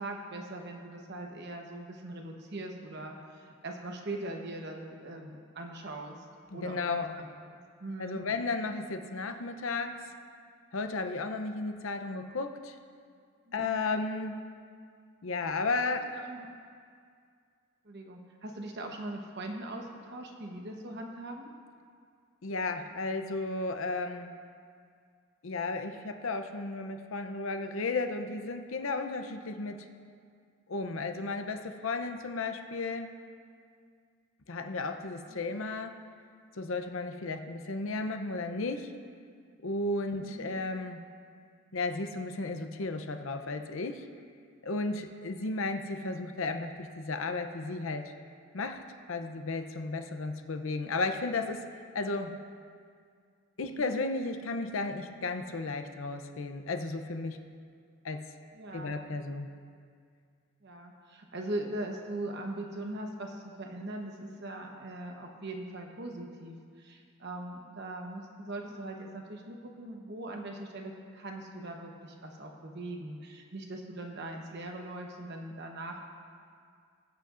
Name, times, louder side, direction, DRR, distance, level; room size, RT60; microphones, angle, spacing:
voice 1, 0.0-6.2 6.5-8.2 13.5-13.8 16.1-16.5 17.8-21.5 35.3-35.5 40.1-40.6 53.6-53.9 58.5-59.0 60.6-76.0, right 1 dB, 50° right, 2 dB, 1.0 m, -41 dB
voice 2, 6.5-7.2 8.0-10.0 10.7-12.8 13.5-14.4 15.2-16.1 22.4-24.3 25.4-29.9 30.7-33.1 34.5-36.0 36.6-38.9 39.6-41.0 41.7-44.1 44.6-48.1 48.5-48.8 49.1-51.7 51.9-52.4 53.6-57.4 58.0-58.3 58.7-59.5, left 3 dB, 70° left, 7 dB, 0.7 m, -34 dB
21.0 x 8.1 x 2.5 m, 2.2 s
head